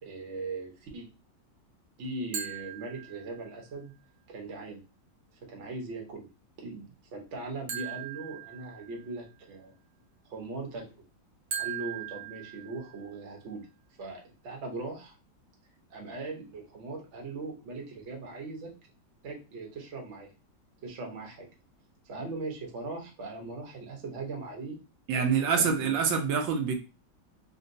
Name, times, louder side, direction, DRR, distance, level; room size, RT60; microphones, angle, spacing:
voice 1, 0.0-1.1 2.0-3.9 4.3-4.8 5.4-6.3 6.6-9.7 10.3-11.0 11.6-13.7 14.0-15.1 15.9-18.7 19.2-20.3 20.8-21.5 22.0-24.8 25.2-26.0, right 3 dB, 50° right, 1.0 m, -39 dB
sound 1, 2.3-3.6 7.7-9.2 11.5-13.2, right 9 dB, 65° right, 1.2 m, -39 dB
voice 2, 25.1-26.7, right 6 dB, 85° right, 1.4 m, -26 dB
3.8 x 2.2 x 2.6 m
omnidirectional pair, 2.0 m